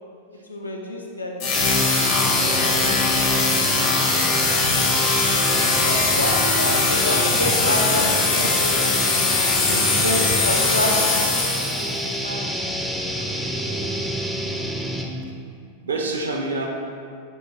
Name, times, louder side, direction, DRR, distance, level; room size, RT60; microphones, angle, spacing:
voice 1, 0.5-2.1 2.4-2.8 4.1-4.4 5.8-8.8 9.7-11.2 11.5-11.7 12.2-12.4, left 1 dB, 80° left, 0 dB, 0.5 m, -28 dB
sound 1, 1.4-12.0, left 3 dB, 50° left, 0.8 m, -21 dB
sound 2, 1.5-15.2, equal, ahead, 0.4 m, -27 dB
voice 2, 1.6-1.9 4.5-5.5 14.6-14.8 15.8-16.7, right 3 dB, 70° right, 1 dB, 0.6 m, -30 dB
6.3 x 2.4 x 3.2 m, 2.3 s
figure-of-eight pair, 90°, 0 cm